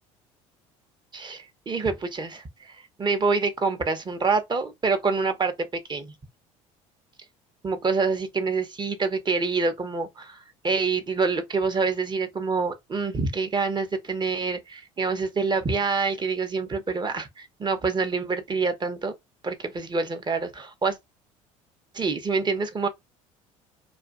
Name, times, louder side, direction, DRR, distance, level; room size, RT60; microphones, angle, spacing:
voice 1, 1.1-6.1 7.6-19.1 19.4-21.0 21.9-22.9, right 4 dB, 25° right, 0.8 m, -26 dB
2.5 x 2.4 x 2.4 m
hypercardioid pair, 75°, 17 cm